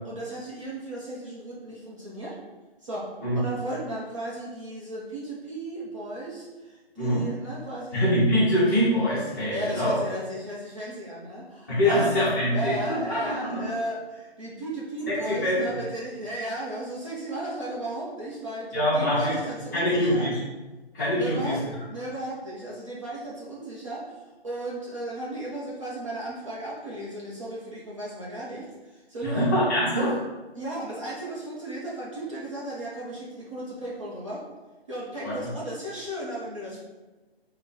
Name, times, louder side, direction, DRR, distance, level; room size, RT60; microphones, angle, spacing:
voice 1, 0.0-2.4 2.8-8.1 9.5-12.2 12.5-20.3 21.2-29.6 30.5-34.4 34.9-36.8, right 1 dB, 30° right, -7 dB, 0.6 m, -35 dB
voice 2, 7.9-9.9 11.7-13.6 15.1-15.7 18.7-19.3 19.7-20.4 20.9-21.6 29.2-30.1 35.2-35.5, equal, 20° left, -10 dB, 0.9 m, -24 dB
3.4 x 2.2 x 4.1 m, 1.2 s
hypercardioid pair, 160°, 31 cm